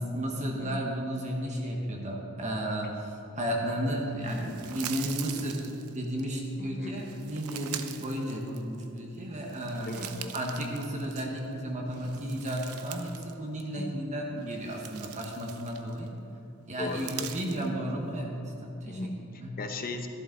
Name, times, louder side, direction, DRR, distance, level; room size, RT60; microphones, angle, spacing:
voice 1, 0.0-3.1 3.3-9.9 10.3-16.1 16.7-18.4 18.6-19.1 19.4-19.5, equal, 35° right, -1 dB, 1.3 m, -33 dB
sound 1, 4.2-6.3 7.0-9.0 9.4-11.5 11.9-13.3 13.6-13.8 14.4-16.1 16.8-17.7, right 10 dB, 80° right, 0.7 m, -42 dB
voice 2, 6.6-7.0 7.9-8.0 9.9-10.4 13.7-14.0 16.8-17.6 18.9-20.1, left 2 dB, 40° left, 5 dB, 0.9 m, -38 dB
15.0 x 11.0 x 3.9 m, 2.8 s
head